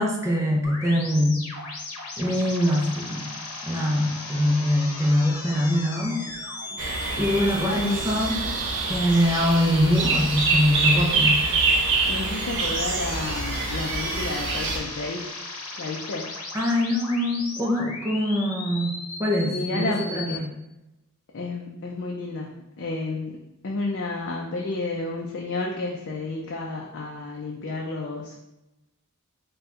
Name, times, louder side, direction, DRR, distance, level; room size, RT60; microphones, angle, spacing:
voice 1, 0.0-1.4 2.2-3.3 3.6-6.2 7.2-8.5 8.9-11.4 16.5-18.9 19.2-20.5, left 1 dB, 15° right, -1 dB, 0.6 m, -23 dB
sound 1, 0.6-20.4, left 2 dB, 90° left, 0.8 m, -37 dB
sound 2, 6.8-14.8, right 3 dB, 55° right, 0.6 m, -25 dB
voice 2, 7.6-8.0 12.1-15.3 15.8-16.3 19.4-20.4 21.3-28.4, left 2 dB, 55° left, -2 dB, 0.5 m, -31 dB
4.2 x 2.3 x 3.6 m, 0.96 s
head